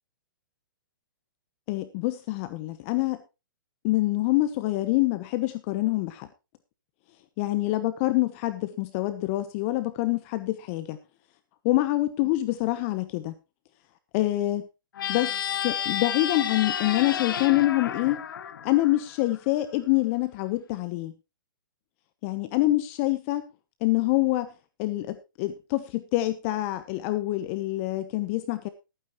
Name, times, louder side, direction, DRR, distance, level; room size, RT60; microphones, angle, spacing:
voice 1, 1.7-3.2 3.8-6.3 7.4-11.0 11.6-13.3 14.1-14.7 15.1-15.3 15.6-18.2 18.6-21.1 22.2-23.4 23.8-24.5 24.8-28.7, left 17 dB, 35° left, 11 dB, 1.0 m, -26 dB
sound 1, 14.9-19.4, left 9 dB, 70° left, 1.5 m, -31 dB
18.5 x 9.3 x 3.1 m, 0.28 s
hypercardioid pair, 145°, 12 cm